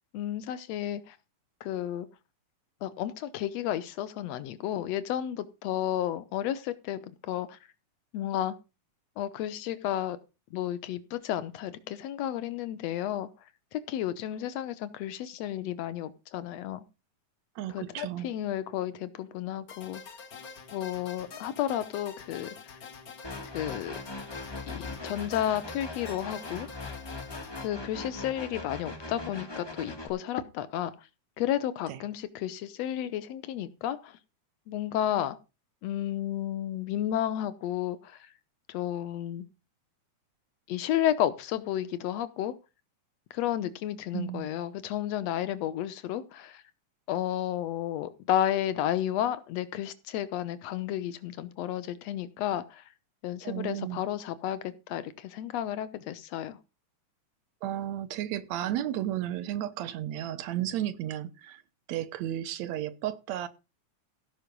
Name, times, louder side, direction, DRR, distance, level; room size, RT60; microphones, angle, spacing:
voice 1, 0.1-1.2 1.6-2.1 2.8-7.6 8.1-8.6 9.2-10.2 10.5-13.3 13.7-16.8 17.7-20.0 20.7-22.5 23.5-23.9 24.6-26.7 27.6-31.1 31.4-34.2 34.7-35.4 35.8-38.3 38.7-39.5 40.7-42.5 43.3-46.6 47.1-52.8 53.2-56.6, left 11 dB, 70° left, 1.9 m, -32 dB
voice 2, 17.6-18.3 31.9-32.0 44.1-44.5 53.4-54.0 57.6-61.6 61.9-63.5, right 12 dB, 70° right, 2.1 m, -33 dB
sound 1, 19.7-27.7, left 5 dB, 50° left, 1.1 m, -46 dB
sound 2, 23.2-30.1, left 2 dB, 30° left, 0.4 m, -40 dB
16.0 x 5.6 x 5.3 m
omnidirectional pair, 3.5 m